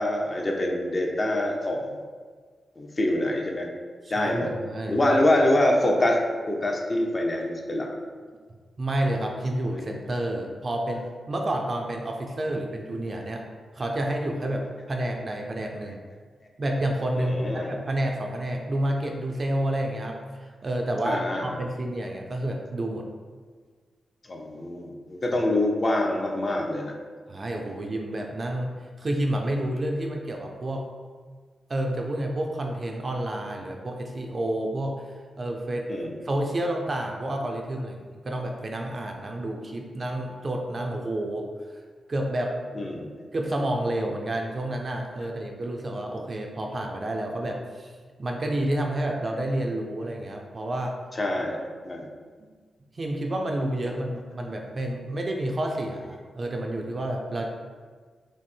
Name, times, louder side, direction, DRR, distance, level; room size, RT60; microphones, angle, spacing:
voice 1, 0.0-2.0 2.8-3.7 4.1-4.5 4.9-6.2 6.5-7.9 17.1-17.7 21.0-21.6 24.3-26.9 27.7-27.8 35.9-36.2 42.7-43.1 51.1-51.6 51.8-52.1 53.8-53.9, left 1 dB, 25° left, 0 dB, 0.5 m, -25 dB
voice 2, 4.0-5.2 8.8-13.4 13.7-16.0 16.6-23.1 27.3-30.9 31.7-35.9 36.2-41.5 42.1-42.6 43.3-47.9 48.2-51.0 52.4-52.5 52.9-57.5, right 1 dB, 30° right, 1 dB, 0.4 m, -29 dB
5.9 x 2.0 x 4.2 m, 1.5 s
wide cardioid pair, 180°, 0 cm